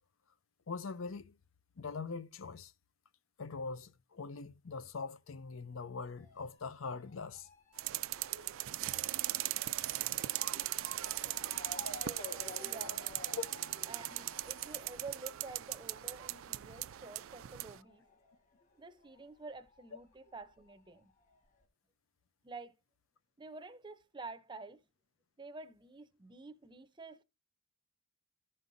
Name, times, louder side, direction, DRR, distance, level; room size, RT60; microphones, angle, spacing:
voice 1, 0.7-1.4 1.8-2.7 3.4-7.5 9.8-9.9 13.3-13.5, left 4 dB, 75° left, 0.7 m, -42 dB
Motor vehicle (road) / Siren, 6.2-19.2 19.4-20.6 21.3-21.4 21.6-21.7, left 2 dB, 35° left, 1.6 m, -53 dB
sound 1, 7.8-17.8, right 16 dB, 75° right, 0.4 m, -39 dB
voice 2, 12.6-13.0 13.9-18.0 18.8-21.1 22.4-22.7 23.4-24.8 25.4-27.2, right 3 dB, 20° right, 0.6 m, -49 dB
14.5 x 5.5 x 2.6 m
head